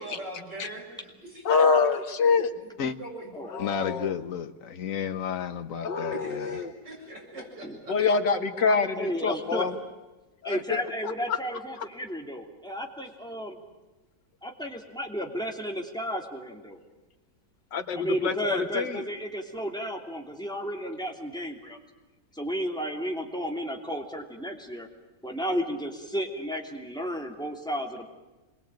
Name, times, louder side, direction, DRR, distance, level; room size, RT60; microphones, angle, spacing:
voice 1, 0.0-1.7 2.5-3.3 6.1-8.0, right 1 dB, 85° right, -1 dB, 8.2 m, -42 dB
voice 2, 1.5-2.5 3.5-4.2 5.8-6.7 7.9-9.7 10.5-10.8 11.3-11.4 17.7-18.3 18.7-19.0, left 5 dB, 90° left, 7 dB, 2.3 m, -25 dB
voice 3, 3.6-6.1, left 7 dB, 55° left, 9 dB, 1.5 m, -31 dB
voice 4, 9.0-9.7 10.5-13.6 14.4-16.8 17.9-21.8 22.3-24.9 25.2-28.1, equal, ahead, 2 dB, 2.9 m, -33 dB
26.5 x 22.0 x 9.1 m, 1.1 s
omnidirectional pair, 1.8 m